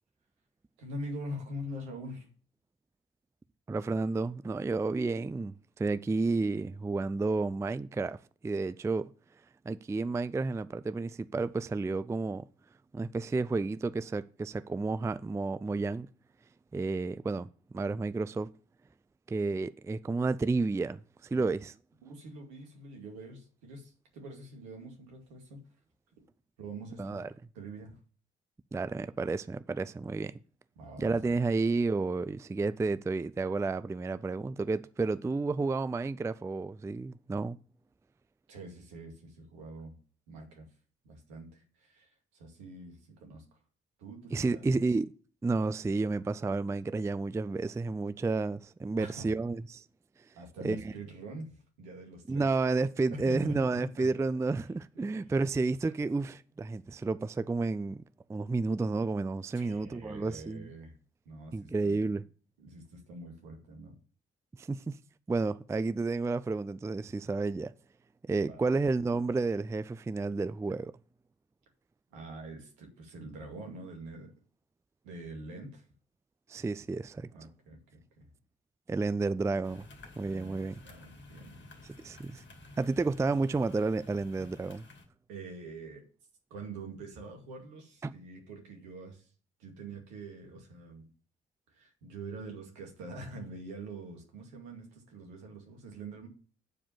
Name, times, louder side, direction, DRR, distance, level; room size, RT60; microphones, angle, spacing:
voice 1, 0.8-2.3 21.3-21.5 22.0-25.6 26.6-28.0 30.8-31.4 38.5-40.0 40.3-40.7 41.0-43.4 44.0-44.6 49.0-49.4 50.3-52.5 53.1-53.5 53.8-54.1 55.2-55.3 59.5-61.0 61.3-62.1 62.6-64.0 68.3-68.6 72.1-74.3 75.0-75.9 77.3-78.3 80.2-81.8 85.3-86.0 86.5-89.3 89.6-91.1 91.7-96.3, right 1 dB, 75° right, 2.3 m, -45 dB
voice 2, 3.7-8.2 8.4-9.1 9.7-12.4 12.9-16.1 16.7-18.5 19.3-21.7 27.0-27.3 28.7-30.3 31.0-37.6 44.3-45.1 45.4-49.8 50.6-50.9 52.3-58.0 58.3-60.7 61.5-62.2 64.6-65.0 65.3-67.7 68.3-71.0 76.5-77.3 78.9-79.9 80.2-80.8 82.0-82.4 82.8-84.8 88.0-88.2, right 3 dB, 10° right, 0.4 m, -31 dB
sound 1, 79.6-85.0, left 2 dB, 35° left, 2.4 m, -53 dB
8.9 x 4.9 x 7.2 m
figure-of-eight pair, 40°, 30 cm